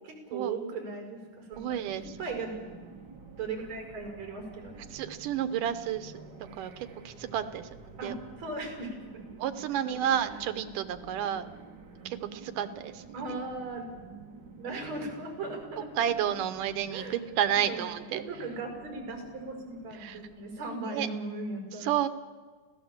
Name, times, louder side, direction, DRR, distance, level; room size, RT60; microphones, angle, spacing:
voice 1, 0.0-2.5 3.4-4.8 8.0-9.2 9.9-10.4 13.1-13.9 14.6-15.9 16.9-17.1 17.5-21.9, right 3 dB, 55° right, 3 dB, 6.8 m, -38 dB
sound 1, 1.5-20.7, right 4 dB, 40° right, 1.9 m, -50 dB
voice 2, 1.6-2.1 4.9-6.1 6.6-7.7 8.0-8.2 9.4-11.5 12.1-13.2 15.9-18.2 20.0-20.2 20.6-21.1 21.8-22.1, right 10 dB, 85° right, 10 dB, 2.5 m, -31 dB
27.5 x 16.5 x 7.3 m, 1.4 s
omnidirectional pair, 3.7 m